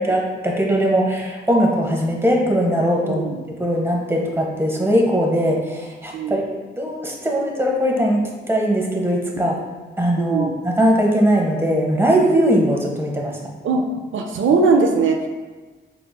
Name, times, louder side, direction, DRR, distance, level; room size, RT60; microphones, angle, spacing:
voice 1, 0.0-3.3 3.6-6.4 6.7-8.2 8.5-9.6 10.0-13.4, equal, 10° right, -1 dB, 0.9 m, -20 dB
voice 2, 3.0-3.4 6.1-6.4 10.2-10.6 13.6-13.8 14.1-15.2, right 4 dB, 85° right, 3 dB, 0.4 m, -19 dB
4.5 x 3.9 x 2.2 m, 1.3 s
cardioid pair, 80°, 20 cm